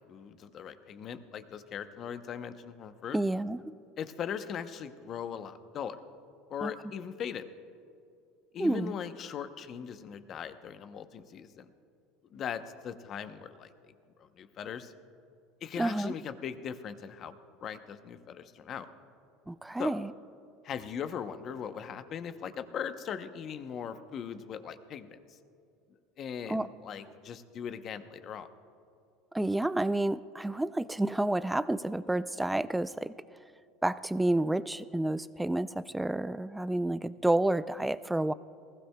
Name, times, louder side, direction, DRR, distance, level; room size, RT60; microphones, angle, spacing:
voice 1, 0.1-3.2 4.0-6.0 6.5-7.4 8.5-11.7 12.3-13.7 14.2-14.9 15.6-17.3 17.6-18.9 19.8-19.9 20.6-25.2 26.2-28.5, left 8 dB, 45° left, 10 dB, 0.8 m, -39 dB
voice 2, 3.1-3.6 6.6-6.7 8.6-8.9 15.8-16.1 19.5-20.1 26.5-26.7 29.3-33.1 33.8-38.3, right 1 dB, 5° right, 15 dB, 0.3 m, -29 dB
20.0 x 15.5 x 2.3 m, 2.5 s
supercardioid pair, 110°, 0 cm